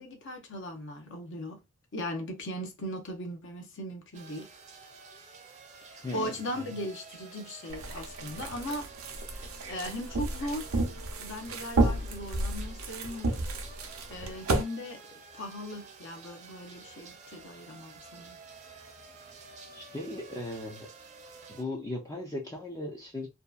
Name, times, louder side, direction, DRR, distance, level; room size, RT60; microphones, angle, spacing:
voice 1, 0.0-1.6 1.9-4.5 5.9-8.9 9.3-10.8 11.2-13.4 14.1-15.0 15.3-18.4, left 1 dB, 60° left, 0.7 m, -38 dB
sound 1, 4.1-21.6, right 4 dB, 35° right, 0.5 m, -50 dB
voice 2, 6.0-6.7 19.7-20.9 21.5-23.3, left 2 dB, 15° left, 0.4 m, -37 dB
sound 2, 7.7-14.6, right 2 dB, 80° right, 0.6 m, -32 dB
2.7 x 2.2 x 2.3 m
head